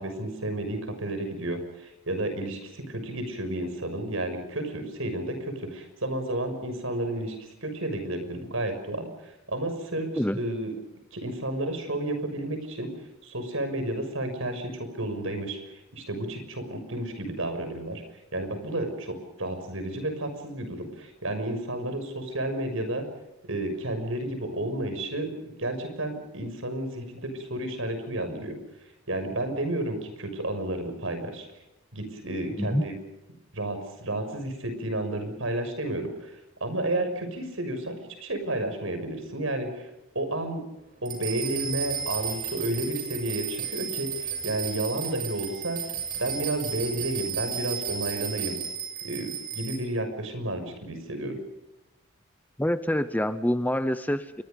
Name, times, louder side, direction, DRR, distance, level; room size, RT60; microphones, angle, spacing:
voice 1, 0.0-7.4 7.6-10.7 11.1-12.9 13.2-18.0 18.3-23.1 23.4-28.6 29.1-31.5 31.9-32.9 33.5-39.9 40.1-40.7 41.0-45.8 46.2-48.6 49.0-51.4, right 1 dB, 70° right, 8 dB, 6.2 m, -31 dB
sound 1, 41.1-49.8, right 8 dB, 40° right, 7.4 m, -34 dB
voice 2, 52.6-54.4, equal, 10° left, 11 dB, 0.8 m, -26 dB
29.0 x 24.0 x 5.3 m, 0.91 s
head